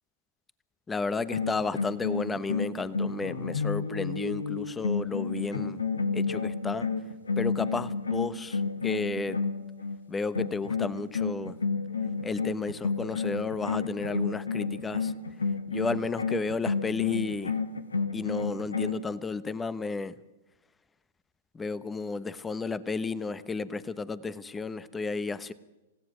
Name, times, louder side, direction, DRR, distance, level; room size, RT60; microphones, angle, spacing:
voice 1, 0.9-5.8 6.1-6.9 7.4-9.4 10.1-11.6 12.2-15.1 15.7-17.5 18.1-20.1 21.5-25.5, left 4 dB, 15° left, 16 dB, 1.1 m, -32 dB
sound 1, 1.2-10.0 10.3-19.0, left 4 dB, 85° left, 1.7 m, -31 dB
28.0 x 17.0 x 6.2 m, 1.1 s
figure-of-eight pair, 105°, 0 cm